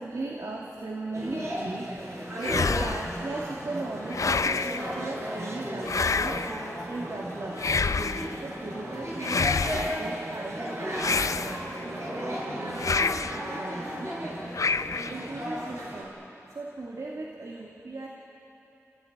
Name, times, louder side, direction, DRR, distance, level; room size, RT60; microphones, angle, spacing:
voice 1, 0.0-6.4 6.9-7.7 7.9-13.2 13.6-14.2 15.1-16.2 16.5-18.1, right 2 dB, 80° right, -2 dB, 2.2 m, -38 dB
sound 1, 1.1-16.0, equal, 55° right, 6.7 m, -35 dB
sound 2, 2.4-3.2 4.1-4.9 5.8-6.6 7.6-8.4 9.2-10.0 11.0-11.8 12.8-13.4 14.5-15.2, left 4 dB, 70° left, 0.5 m, -28 dB
28.5 x 16.5 x 9.3 m, 3.0 s
wide cardioid pair, 55°, 6 cm